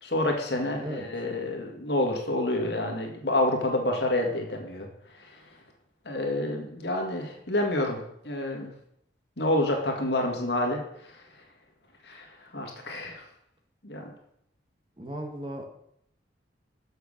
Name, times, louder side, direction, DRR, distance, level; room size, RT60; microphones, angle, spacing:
voice 1, 0.0-4.9 5.2-5.4 6.1-8.7 9.4-11.2 12.0-13.2 13.8-14.1, left 1 dB, 65° left, 1 dB, 2.0 m, -28 dB
voice 2, 0.8-1.1 15.0-15.6, right 1 dB, 25° right, 2 dB, 1.4 m, -36 dB
6.9 x 6.6 x 6.5 m, 0.72 s
head